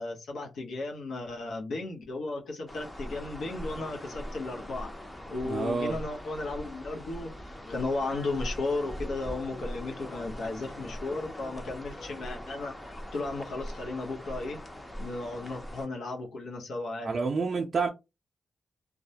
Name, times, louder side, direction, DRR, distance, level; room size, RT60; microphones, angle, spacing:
voice 1, 0.0-4.9 5.3-14.6 15.0-17.2, left 3 dB, 85° left, 0.8 m, -35 dB
sound 1, 2.7-15.9, equal, 10° left, 0.6 m, -41 dB
voice 2, 5.4-6.0 17.0-17.9, right 4 dB, 55° right, 0.4 m, -28 dB
2.2 x 2.1 x 2.7 m
cardioid pair, 90°, 0 cm